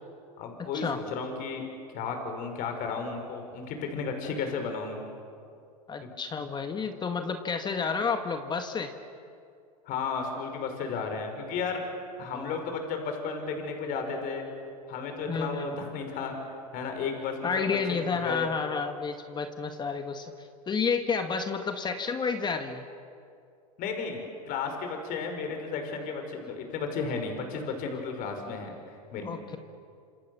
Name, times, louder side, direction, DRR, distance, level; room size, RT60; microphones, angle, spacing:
voice 1, 0.4-1.6 1.9-5.0 9.9-11.9 12.2-14.4 14.9-16.4 16.7-18.5 23.8-28.8 29.1-29.3, left 5 dB, 45° left, 4 dB, 5.4 m, -33 dB
voice 2, 5.9-8.9 12.3-12.6 15.2-15.8 17.4-22.9 29.2-29.6, left 5 dB, 20° left, 7 dB, 1.7 m, -31 dB
27.5 x 27.0 x 7.0 m, 2.4 s
hypercardioid pair, 105°, 19 cm